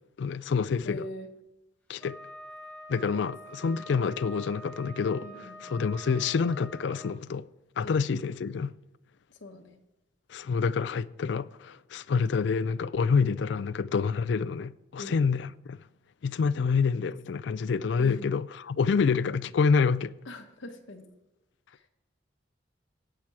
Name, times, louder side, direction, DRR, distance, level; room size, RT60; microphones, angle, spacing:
voice 1, 0.2-1.0 1.9-2.2 2.9-7.5 7.8-8.7 10.3-15.8 16.2-20.2, left 5 dB, 70° left, 0.4 m, -27 dB
voice 2, 0.8-1.3 3.0-3.2 5.2-5.6 7.8-8.0 9.3-9.8 15.0-15.1 18.0-18.2 20.3-21.0 21.7-21.9, left 1 dB, 90° left, 1.1 m, -42 dB
Wind instrument woodwind instrument, 2.0-7.1, right 1 dB, 5° left, 0.9 m, -46 dB
17.5 x 5.9 x 4.7 m
head